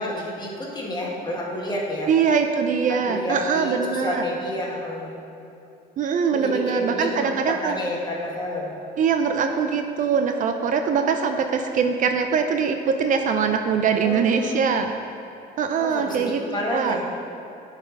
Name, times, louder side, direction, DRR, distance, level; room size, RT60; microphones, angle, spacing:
voice 1, 0.0-2.1 3.1-5.1 6.3-8.7 14.0-14.6 15.8-17.1, left 1 dB, 25° left, -3 dB, 1.6 m, -30 dB
voice 2, 2.1-4.2 6.0-7.8 9.0-14.9 15.6-16.4 16.7-17.0, right 6 dB, 50° right, 6 dB, 0.5 m, -22 dB
10.5 x 4.1 x 4.7 m, 2.8 s
cardioid pair, 110°, 17 cm